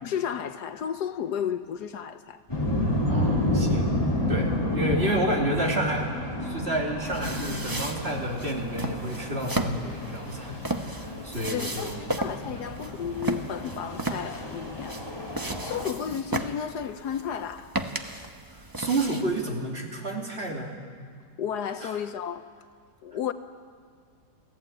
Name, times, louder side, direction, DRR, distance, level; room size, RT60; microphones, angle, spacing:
voice 1, 0.0-2.4 11.5-15.0 15.4-17.7 21.4-22.5 23.0-23.3, left 8 dB, 70° left, 1.3 m, -33 dB
sound 1, 2.5-15.8, left 1 dB, 15° left, 3.5 m, -30 dB
voice 2, 3.0-3.9 4.3-10.6 11.0-12.2 12.5-12.6 18.8-20.8 21.8-21.9, right 1 dB, 35° right, 3.0 m, -30 dB
sound 2, 7.0-19.4, right 2 dB, 15° right, 0.8 m, -35 dB
28.5 x 15.0 x 8.8 m
omnidirectional pair, 1.9 m